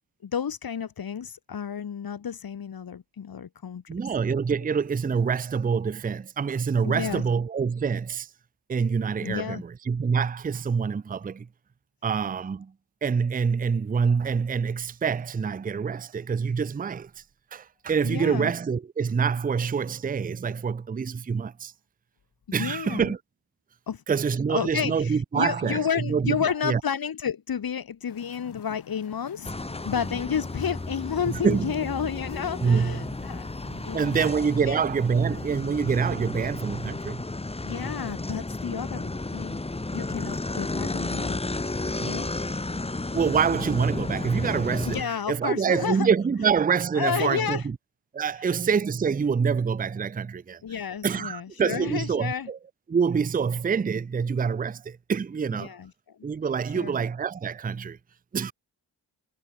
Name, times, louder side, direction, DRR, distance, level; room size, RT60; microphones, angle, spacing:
voice 1, 0.2-3.8 6.8-7.2 9.2-9.6 18.0-18.5 22.6-23.1 23.9-24.0 24.5-29.5 29.8-33.5 33.8-34.3 34.6-34.8 37.6-39.6 39.9-41.4 42.0-42.6 44.9-46.1 47.0-47.7 48.4-48.5 50.6-52.5 55.6-56.2 56.7-56.9, left 7 dB, 65° left, 2.6 m, -31 dB
voice 2, 3.9-8.3 8.7-11.5 12.0-12.7 13.0-17.1 17.5-21.7 22.5-23.2 24.1-26.4 26.6-26.8 31.3-31.7 32.6-33.2 33.7-37.2 42.0-42.2 43.1-47.8 48.1-50.6 51.0-52.6 52.9-55.7 56.2-58.0 58.3-58.5, right 6 dB, 20° right, 0.5 m, -26 dB
sound 1, 28.1-35.6, left 9 dB, 90° left, 6.3 m, -50 dB
sound 2, 29.4-45.0, left 2 dB, 15° left, 1.3 m, -33 dB
cardioid pair, 80°, 39 cm